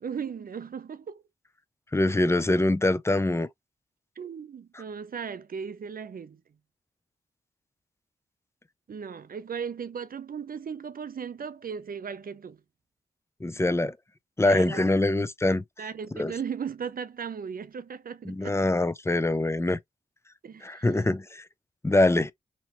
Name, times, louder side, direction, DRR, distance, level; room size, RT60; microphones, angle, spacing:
voice 1, 0.0-1.2 4.2-6.4 8.9-12.6 14.4-14.9 15.8-18.6 20.4-21.0, right 7 dB, 60° right, 0.6 m, -37 dB
voice 2, 1.9-3.5 13.4-14.0 14.4-15.6 16.1-16.3 18.3-19.8 20.6-21.5 21.8-22.3, left 2 dB, 15° left, 0.5 m, -24 dB
3.0 x 2.8 x 3.0 m
cardioid pair, 45°, 17 cm